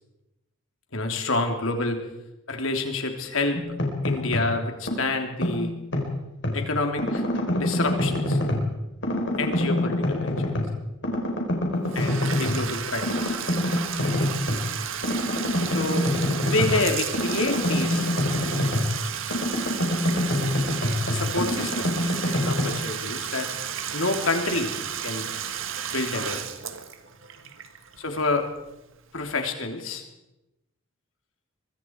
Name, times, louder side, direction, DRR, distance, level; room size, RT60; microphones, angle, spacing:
voice 1, 0.9-2.0 2.5-3.6 4.0-5.7 6.5-7.2 7.6-8.4 9.4-10.4 12.0-13.4 15.7-16.1 16.5-18.1 21.1-23.5 23.9-24.7 25.0-25.3 25.9-26.4 28.0-28.5 29.1-30.0, left 3 dB, 75° left, 4 dB, 3.4 m, -28 dB
sound 1, 3.5-4.5 4.9-6.6 7.0-8.7 9.0-10.8 11.0-12.6 13.0-14.6 15.0-19.0 19.3-22.6, left 1 dB, 55° left, 4.5 m, -26 dB
Bathtub (filling or washing), 11.8-28.6, right 8 dB, 70° right, 1.6 m, -33 dB
24.5 x 23.0 x 4.8 m, 0.95 s
head